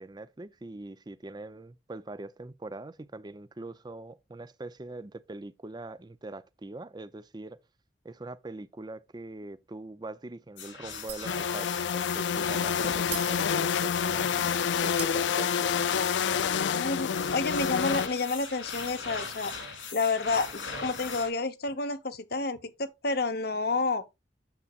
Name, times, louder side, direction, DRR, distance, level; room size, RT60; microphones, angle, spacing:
voice 1, 0.0-7.6 8.0-15.7, right 2 dB, 20° right, 0.5 m, -42 dB
sound 1, 10.6-21.3, left 4 dB, 90° left, 3.6 m, -40 dB
Shatter, 11.1-11.6 11.9-12.1 13.1-14.1 15.0-16.0, right 10 dB, 60° right, 2.2 m, -41 dB
sound 2, 11.2-18.1, left 7 dB, 70° left, 0.4 m, -28 dB
voice 2, 16.6-19.5 19.9-24.0, left 3 dB, 55° left, 0.9 m, -30 dB
9.5 x 7.1 x 2.4 m
head